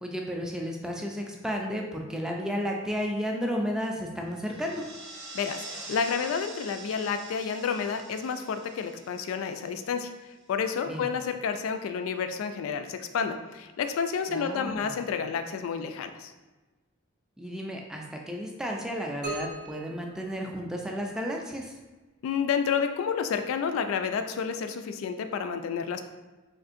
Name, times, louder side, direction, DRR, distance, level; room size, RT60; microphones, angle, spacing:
voice 1, 0.0-4.8 10.9-11.1 14.3-14.9 17.4-21.7, equal, 5° right, 0 dB, 0.3 m, -33 dB
sound 1, 4.3-10.2, right 2 dB, 80° right, 0.8 m, -45 dB
voice 2, 5.3-10.1 10.5-16.3 22.2-26.0, left 6 dB, 85° left, 10 dB, 0.3 m, -30 dB
sound 2, 19.2-21.1, right 2 dB, 55° right, 0.6 m, -40 dB
3.6 x 2.5 x 2.5 m, 1.2 s
head